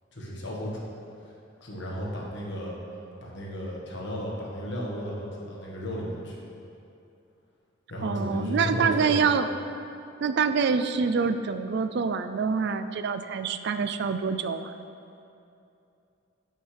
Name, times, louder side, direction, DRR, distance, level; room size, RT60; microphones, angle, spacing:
voice 1, 0.1-0.8 1.6-2.7 3.2-6.4 7.9-9.2, equal, 60° left, -4 dB, 1.5 m, -34 dB
voice 2, 8.0-9.5 10.2-14.7, right 5 dB, 55° right, 10 dB, 0.4 m, -26 dB
11.5 x 5.5 x 3.3 m, 2.7 s
head